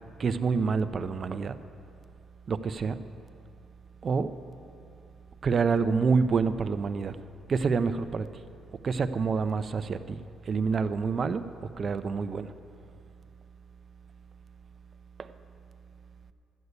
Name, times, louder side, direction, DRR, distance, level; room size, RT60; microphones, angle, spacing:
voice 1, 0.2-1.6 2.5-3.0 4.0-4.3 5.4-7.2 7.5-8.3 8.8-10.2 10.5-11.5 11.8-12.5 15.2-15.3, right 5 dB, 45° right, 11 dB, 0.6 m, -27 dB
12.5 x 8.3 x 8.0 m, 2.5 s
cardioid pair, 90°, 0 cm